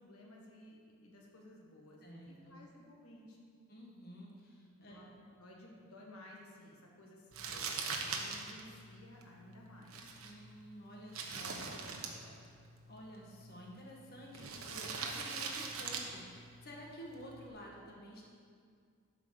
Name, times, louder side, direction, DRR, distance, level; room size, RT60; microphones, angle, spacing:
voice 1, 0.0-3.4 4.9-5.1 5.4-10.0 11.3-12.4, left 1 dB, 90° left, -2 dB, 1.6 m, -56 dB
voice 2, 2.0-2.6 3.7-5.0 10.2-11.5 12.9-18.2, equal, 45° left, -2 dB, 1.6 m, -51 dB
Crumpling crinkling, 7.3-17.5, right 4 dB, 70° right, 1.1 m, -44 dB
11.5 x 5.0 x 6.6 m, 2.2 s
head